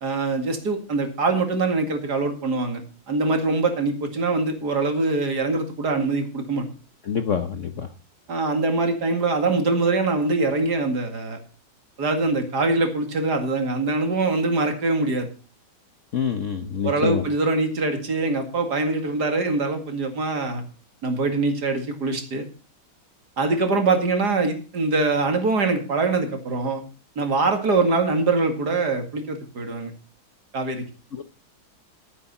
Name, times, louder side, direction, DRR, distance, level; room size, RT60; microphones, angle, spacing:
voice 1, 0.0-2.8 3.1-6.7 8.3-11.4 12.0-15.3 16.8-20.6 21.0-22.5 23.4-26.8 27.2-29.9 30.5-30.8, right 3 dB, 50° right, 6 dB, 2.6 m, -23 dB
voice 2, 7.1-7.9 16.1-17.2 31.1-31.2, left 7 dB, 50° left, 8 dB, 0.9 m, -26 dB
11.5 x 10.5 x 4.2 m, 0.37 s
omnidirectional pair, 2.2 m